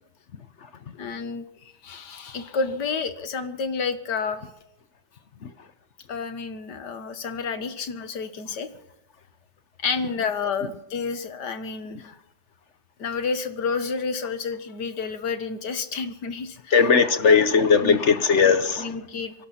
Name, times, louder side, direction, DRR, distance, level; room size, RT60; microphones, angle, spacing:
voice 1, 1.0-4.4 6.1-8.7 9.8-12.1 13.0-16.8 17.2-17.4 17.8-18.0 18.8-19.3, left 5 dB, 75° left, 2.0 m, -30 dB
voice 2, 16.7-18.9, left 5 dB, 50° left, 0.9 m, -18 dB
28.0 x 12.0 x 4.3 m
omnidirectional pair, 1.9 m